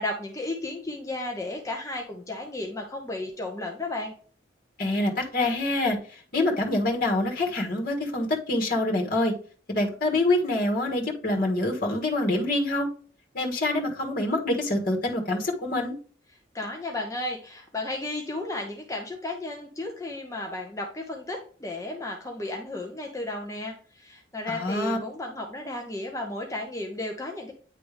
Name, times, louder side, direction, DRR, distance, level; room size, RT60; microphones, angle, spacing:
voice 1, 0.0-4.1 16.5-27.5, left 2 dB, 15° left, 1 dB, 0.8 m, -34 dB
voice 2, 4.8-9.3 9.7-12.9 13.3-15.9 24.5-25.0, left 2 dB, 50° left, 1 dB, 1.6 m, -26 dB
9.5 x 3.4 x 3.4 m, 0.43 s
head